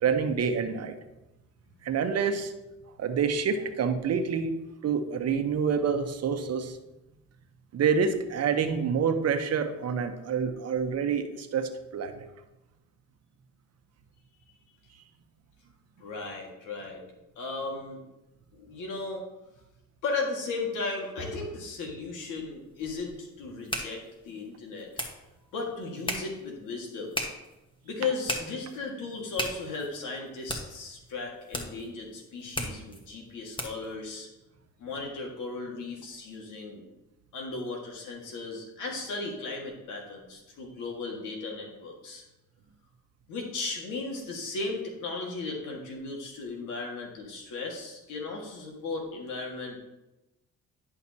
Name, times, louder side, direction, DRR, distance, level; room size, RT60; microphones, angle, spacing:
voice 1, 0.0-1.0 1.8-2.5 3.0-4.5 4.8-6.8 7.7-12.2, right 6 dB, 55° right, 7 dB, 0.9 m, -27 dB
voice 2, 16.0-17.0 17.4-18.0 18.5-19.2 20.0-24.9 25.5-27.2 27.8-34.3 34.8-36.8 37.3-42.2 43.3-49.8, left 3 dB, 90° left, 0 dB, 1.9 m, -36 dB
sound 1, 22.3-33.9, left 1 dB, 15° left, 1.3 m, -39 dB
11.0 x 5.7 x 2.8 m, 0.99 s
cardioid pair, 90°, 30 cm